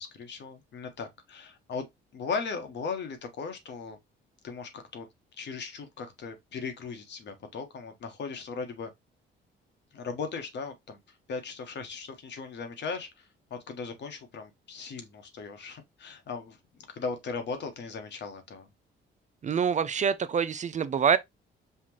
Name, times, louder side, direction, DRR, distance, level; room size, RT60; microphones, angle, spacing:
voice 1, 0.0-1.9 2.1-4.0 4.4-5.1 5.4-8.9 9.9-11.0 11.3-16.6 16.9-18.7, left 5 dB, 60° left, 1.3 m, -37 dB
voice 2, 19.4-21.2, right 7 dB, 35° right, 0.4 m, -25 dB
5.7 x 2.5 x 3.0 m
cardioid pair, 90°, 20 cm